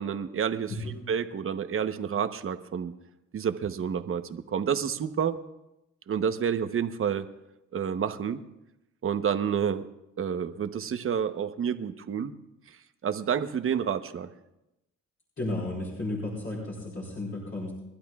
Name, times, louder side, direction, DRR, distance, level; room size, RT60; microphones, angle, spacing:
voice 1, 0.0-0.8 1.1-2.9 3.3-5.4 6.1-7.2 7.7-8.4 9.0-9.8 10.2-12.3 13.0-14.3, right 7 dB, 45° right, 9 dB, 1.0 m, -29 dB
voice 2, 15.4-17.7, left 2 dB, 40° left, -5 dB, 4.4 m, -33 dB
29.5 x 12.0 x 2.4 m, 0.91 s
cardioid pair, 90°, 30 cm